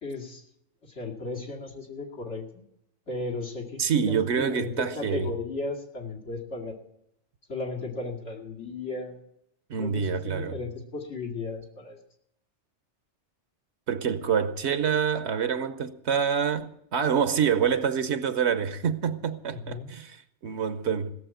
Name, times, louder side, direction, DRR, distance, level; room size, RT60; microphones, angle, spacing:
voice 1, 0.0-0.4 0.8-2.6 3.1-6.8 7.5-9.2 9.8-12.0 19.5-19.9, left 3 dB, 75° left, 2.7 m, -35 dB
voice 2, 3.8-5.3 9.7-10.6 13.9-21.1, right 7 dB, 70° right, 1.1 m, -26 dB
17.0 x 7.4 x 8.9 m
omnidirectional pair, 1.2 m